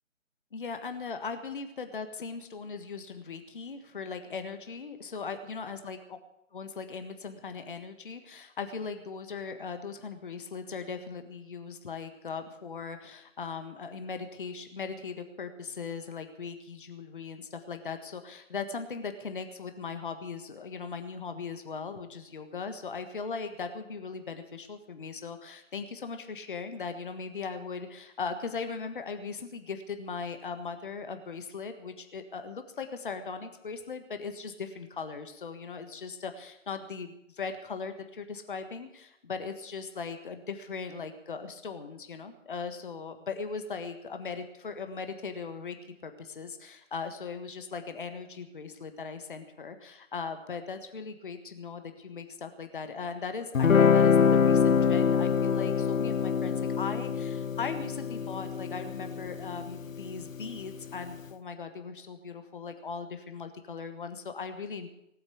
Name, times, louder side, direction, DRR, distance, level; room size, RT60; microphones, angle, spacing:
voice 1, 0.5-6.2 6.5-45.8 46.0-64.9, left 5 dB, 40° left, 8 dB, 1.6 m, -39 dB
Guitar, 53.5-60.7, left 6 dB, 85° left, 0.6 m, -25 dB
19.0 x 8.8 x 8.4 m, 0.80 s
figure-of-eight pair, 150°, 39 cm